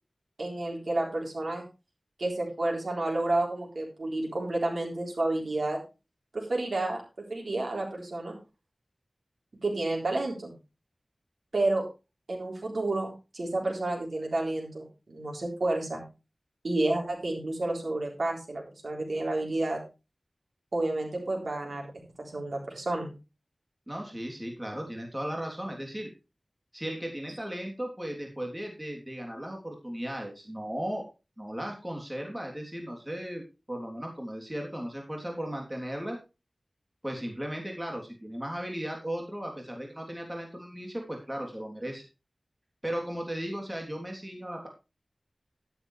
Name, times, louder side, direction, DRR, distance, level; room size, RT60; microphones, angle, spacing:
voice 1, 0.4-1.6 2.2-5.8 6.3-7.0 7.3-8.3 9.6-10.5 11.5-11.8 12.3-14.8 15.1-16.0 16.6-19.8 20.7-21.9 22.2-23.1, right 2 dB, 85° right, 0 dB, 3.7 m, -30 dB
voice 2, 23.9-26.1 26.7-31.0 31.4-33.4 33.7-36.2 37.0-42.0 42.8-44.7, equal, 20° right, 1 dB, 3.3 m, -36 dB
11.5 x 10.0 x 3.3 m, 0.29 s
wide cardioid pair, 50°, 0 cm